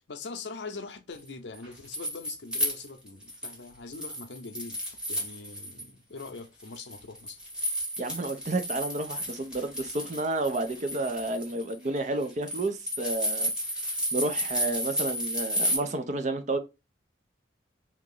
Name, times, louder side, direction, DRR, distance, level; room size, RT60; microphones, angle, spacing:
voice 1, 0.0-4.8 5.1-7.4, left 4 dB, 65° left, 0.6 m, -42 dB
sound 1, 1.5-3.6 3.9-5.8 6.2-15.8, equal, 5° right, 1.1 m, -32 dB
voice 2, 8.0-13.5 14.1-16.6, right 2 dB, 40° right, 0.5 m, -31 dB
2.9 x 2.6 x 3.7 m
head